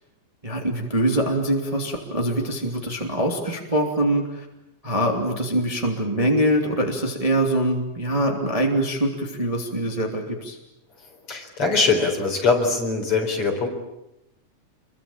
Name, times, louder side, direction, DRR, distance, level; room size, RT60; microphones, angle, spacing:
voice 1, 0.4-4.5 4.8-10.6, right 1 dB, 10° right, 1 dB, 2.6 m, -23 dB
voice 2, 11.1-13.7, left 4 dB, 45° left, 3 dB, 5.0 m, -22 dB
27.5 x 23.5 x 8.7 m, 0.90 s
omnidirectional pair, 3.7 m